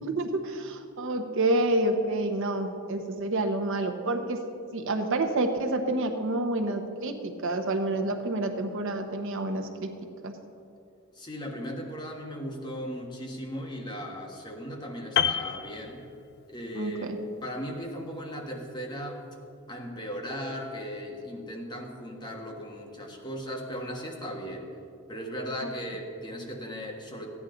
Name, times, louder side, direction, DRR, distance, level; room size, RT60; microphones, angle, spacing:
voice 1, 0.0-4.4 4.7-9.9 10.2-10.3 16.7-17.2, right 2 dB, 60° right, 4 dB, 0.9 m, -28 dB
voice 2, 11.1-16.0 16.5-17.1 17.4-19.3 19.7-24.7 25.1-27.3, equal, 20° left, 0 dB, 1.3 m, -37 dB
Piano, 15.2-16.6 16.9-17.1, left 8 dB, 50° left, 0.3 m, -29 dB
14.5 x 9.8 x 3.9 m, 2.4 s
head